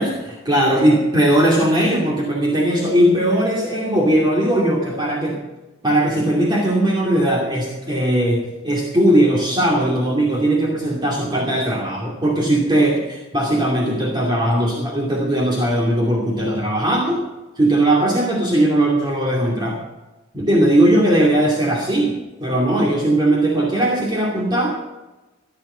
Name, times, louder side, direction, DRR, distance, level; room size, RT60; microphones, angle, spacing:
voice 1, 0.0-5.4 5.8-17.2 17.6-19.8 20.3-22.1 22.4-24.7, right 1 dB, 25° right, -3 dB, 2.6 m, -18 dB
15.5 x 10.5 x 5.6 m, 1.1 s
head